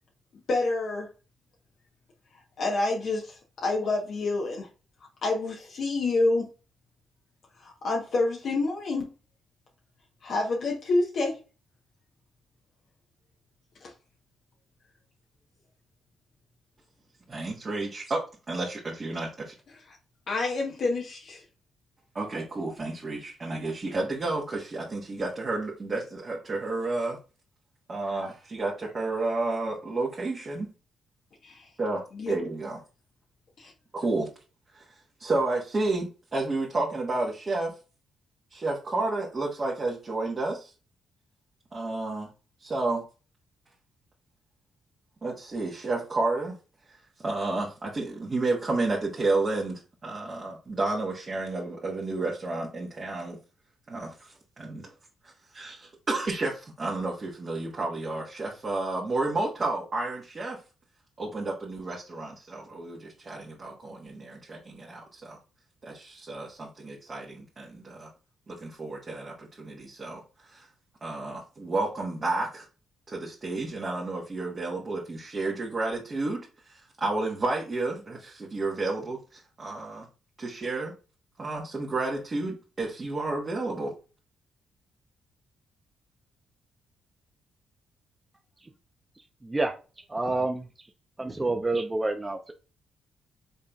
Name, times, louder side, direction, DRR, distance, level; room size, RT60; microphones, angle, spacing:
voice 1, 0.5-1.1 2.6-4.7 5.2-6.5 7.6-9.1 10.2-11.4 13.8-13.9 19.9-20.0 20.3-21.4 31.4-31.7 32.1-32.3 33.6-33.7, left 2 dB, 60° left, 1.1 m, -28 dB
voice 2, 17.3-19.5 22.1-27.2 27.9-30.7 31.8-32.8 33.9-34.3 34.7-34.8 35.2-37.7 38.5-40.7 41.7-42.3 42.6-43.0 45.2-46.5 47.2-53.4 53.9-54.9 55.2-60.6 61.2-65.4 65.8-68.1 68.5-70.7 71.0-72.7 73.1-80.0 80.4-80.9 81.4-84.0, right 2 dB, 40° right, 1.5 m, -31 dB
voice 3, 89.4-89.7 90.1-90.7 91.2-92.5, right 2 dB, 20° right, 0.7 m, -28 dB
5.3 x 3.8 x 2.4 m
supercardioid pair, 50°, 0 cm